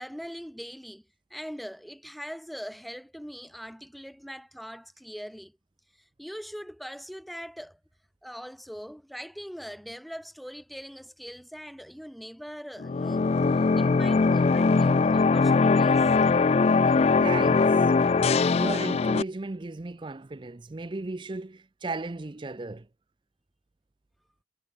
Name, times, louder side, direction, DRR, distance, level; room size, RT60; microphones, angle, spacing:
voice 1, 0.0-5.6 5.9-7.8 8.2-16.1, equal, ahead, 5.8 m, -42 dB
sound 1, 12.8-19.2, left 4 dB, 35° left, 0.3 m, -21 dB
voice 2, 17.2-17.9 18.5-22.9, right 2 dB, 25° right, 0.5 m, -35 dB
head